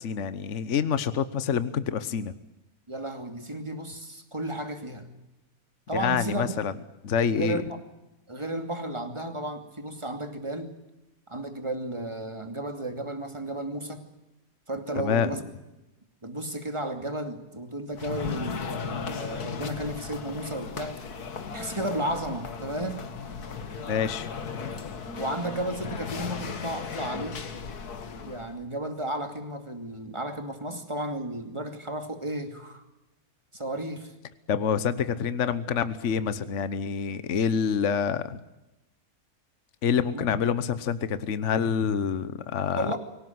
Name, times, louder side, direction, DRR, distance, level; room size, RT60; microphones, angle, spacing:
voice 1, 0.0-2.3 5.9-6.7 7.0-7.6 15.0-15.3 23.9-24.3 34.5-38.4 39.8-43.0, left 7 dB, 55° left, 13 dB, 1.4 m, -27 dB
voice 2, 2.9-5.1 5.9-6.6 7.3-7.8 8.3-10.7 11.3-14.0 14.7-15.4 16.2-21.0 21.5-23.1 25.1-27.4 28.1-32.8 33.5-34.1 40.1-40.3 42.7-43.0, right 1 dB, 20° right, 6 dB, 2.7 m, -33 dB
sound 1, 17.9-28.6, left 6 dB, 80° left, 2.1 m, -36 dB
24.5 x 18.0 x 9.4 m, 0.96 s
omnidirectional pair, 1.6 m